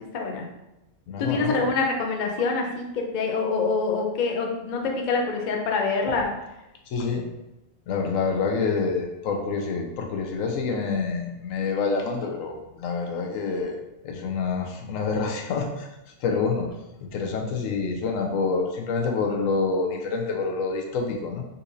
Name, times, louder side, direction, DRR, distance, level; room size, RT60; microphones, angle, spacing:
voice 1, 0.1-0.5 1.2-6.3, left 4 dB, 55° left, 1 dB, 0.5 m, -25 dB
voice 2, 1.1-1.7 6.1-6.2 6.9-7.3 7.9-13.8 14.0-15.9 16.2-16.7 17.0-21.4, left 4 dB, 90° left, 2 dB, 1.0 m, -27 dB
4.0 x 2.7 x 2.6 m, 0.94 s
omnidirectional pair, 1.3 m